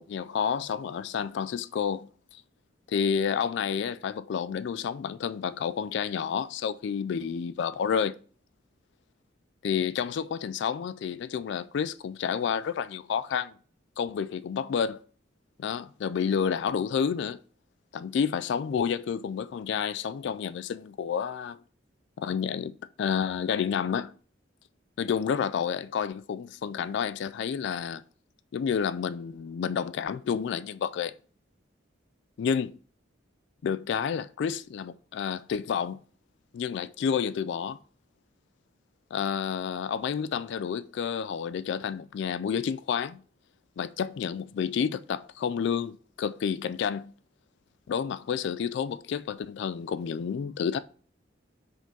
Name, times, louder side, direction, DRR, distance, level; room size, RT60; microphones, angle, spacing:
voice 1, 0.0-2.4 2.9-8.2 9.6-13.5 14.0-15.0 15.6-17.4 17.9-21.6 22.2-24.1 25.0-28.0 28.5-31.1 32.4-32.8 33.6-36.0 36.5-37.8 39.1-43.2 43.8-47.1 47.9-50.8, left 7 dB, 65° left, 0.3 m, -30 dB
4.9 x 3.8 x 5.3 m
head